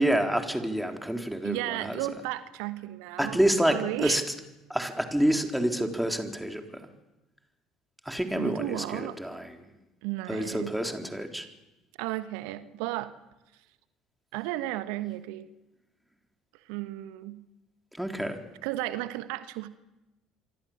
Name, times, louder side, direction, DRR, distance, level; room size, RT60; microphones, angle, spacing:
voice 1, 0.0-2.0 3.2-4.2 4.7-6.9 8.0-9.7 10.3-11.5 17.9-18.4, right 1 dB, 5° right, 4 dB, 3.9 m, -28 dB
voice 2, 1.4-3.4 3.7-4.2 8.4-9.2 10.0-10.7 12.0-13.1 14.3-15.5 16.6-17.4 18.6-19.8, right 15 dB, 65° right, 13 dB, 1.2 m, -34 dB
27.5 x 24.5 x 7.4 m, 1.0 s
figure-of-eight pair, 55°, 0 cm